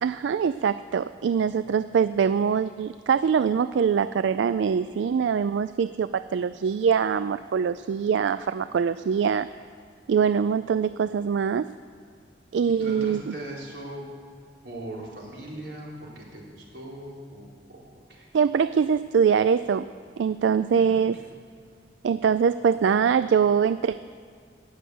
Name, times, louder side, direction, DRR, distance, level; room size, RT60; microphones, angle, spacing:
voice 1, 0.0-9.5 10.1-11.7 12.5-13.3 18.3-19.9 20.2-21.2 22.0-24.0, right 6 dB, 85° right, 14 dB, 0.3 m, -23 dB
voice 2, 12.7-14.1 14.6-17.8 18.1-18.3 20.5-21.3, right 1 dB, 70° right, -4 dB, 3.8 m, -40 dB
19.0 x 6.7 x 7.8 m, 2.2 s
head